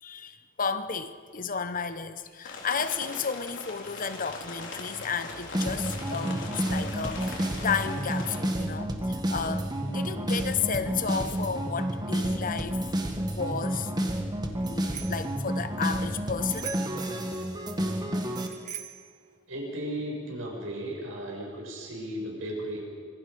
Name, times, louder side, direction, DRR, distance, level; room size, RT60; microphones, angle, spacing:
voice 1, 0.0-12.8 13.3-13.9 14.6-16.8, left 6 dB, 45° left, 11 dB, 1.0 m, -33 dB
sound 1, 2.4-8.4, left 3 dB, 65° left, 4.0 m, -41 dB
sound 2, 5.5-18.5, right 1 dB, 20° right, 1.9 m, -30 dB
Bicycle bell, 14.6-15.3 16.5-17.1 18.3-19.1, right 9 dB, 40° right, 1.7 m, -41 dB
voice 2, 19.5-22.8, right 1 dB, 90° right, -1 dB, 6.6 m, -35 dB
25.5 x 22.0 x 5.3 m, 2.1 s
head